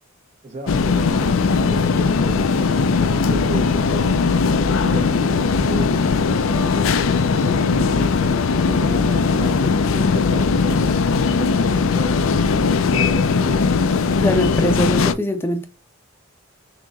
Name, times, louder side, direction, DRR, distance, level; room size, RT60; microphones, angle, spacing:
voice 1, 0.4-4.2 4.8-6.7 7.2-8.2 8.7-9.7 10.1-12.2 12.9-13.7, right 2 dB, 30° right, 0.6 m, -34 dB
sound 1, 0.7-15.1, left 4 dB, 65° left, 0.4 m, -19 dB
sound 2, 1.1-3.4 4.1-6.2 6.5-10.1, right 1 dB, 65° right, 1.0 m, -35 dB
voice 2, 14.2-15.7, left 1 dB, 10° left, 0.6 m, -22 dB
6.2 x 2.9 x 2.4 m
head